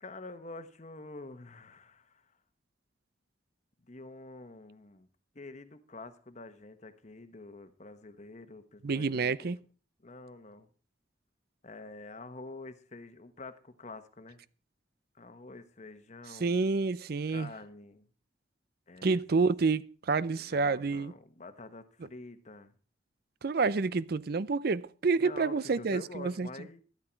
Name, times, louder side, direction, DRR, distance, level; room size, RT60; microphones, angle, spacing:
voice 1, 0.0-2.2 3.9-5.1 5.3-9.5 10.0-10.7 11.6-14.4 15.2-16.6 17.3-18.1 18.9-19.2 20.3-22.7 25.2-26.8, left 2 dB, 40° left, 1.2 m, -47 dB
voice 2, 8.8-9.6 16.4-17.5 19.0-21.1 23.4-26.5, right 4 dB, 55° right, 0.5 m, -28 dB
12.5 x 12.0 x 4.5 m
head